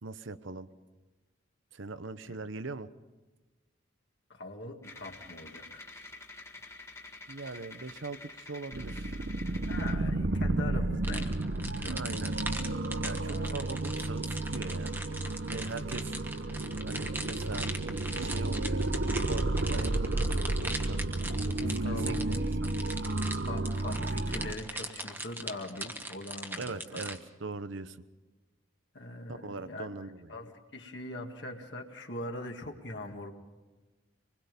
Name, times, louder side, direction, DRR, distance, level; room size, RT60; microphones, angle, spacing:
voice 1, 0.0-0.7 1.7-2.9 7.3-9.2 11.9-12.3 13.0-15.0 15.4-16.1 16.8-17.7 18.2-21.0 21.8-22.5 26.6-28.0 29.3-30.3, right 3 dB, 75° right, 13 dB, 0.9 m, -41 dB
voice 2, 4.3-5.9 9.7-12.0 13.2-13.7 21.4-22.4 23.5-27.1 28.9-33.3, left 1 dB, 60° left, 2 dB, 1.9 m, -42 dB
sound 1, 4.8-10.0, left 2 dB, 15° left, 1.6 m, -48 dB
sound 2, 8.7-24.5, right 2 dB, 55° right, 0.8 m, -32 dB
sound 3, 11.0-27.2, right 2 dB, 10° right, 1.2 m, -40 dB
25.5 x 21.0 x 5.3 m, 1.2 s
head